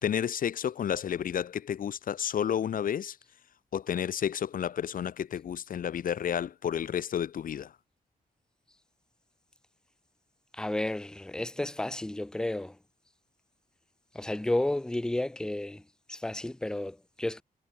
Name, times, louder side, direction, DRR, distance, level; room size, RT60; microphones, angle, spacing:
voice 1, 0.0-3.2 3.7-7.7, left 9 dB, 65° left, 0.9 m, -31 dB
voice 2, 10.5-12.8 14.1-15.8 16.1-17.4, left 1 dB, 5° left, 0.5 m, -32 dB
wide cardioid pair, 180°, 15 cm